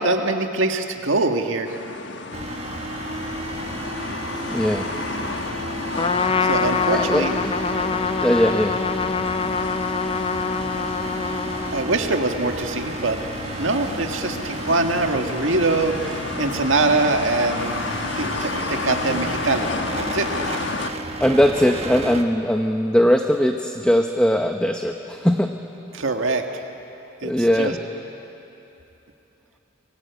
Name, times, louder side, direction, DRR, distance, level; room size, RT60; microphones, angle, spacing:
voice 1, 0.0-1.8 6.4-7.4 11.7-13.2 13.6-17.8 18.2-19.7 20.0-20.3 25.9-26.4 27.2-27.7, right 3 dB, 85° right, 4 dB, 1.7 m, -23 dB
sound 1, 1.6-20.9, left 3 dB, 65° left, 1.2 m, -32 dB
sound 2, 2.3-22.2, right 2 dB, 30° right, 1.3 m, -33 dB
voice 2, 4.5-4.9 6.9-7.3 7.8-8.7 21.2-25.6 27.2-27.8, equal, 5° left, 4 dB, 0.9 m, -20 dB
Trumpet, 6.0-12.1, left 5 dB, 30° left, 0.5 m, -25 dB
30.0 x 22.5 x 8.2 m, 3.0 s
head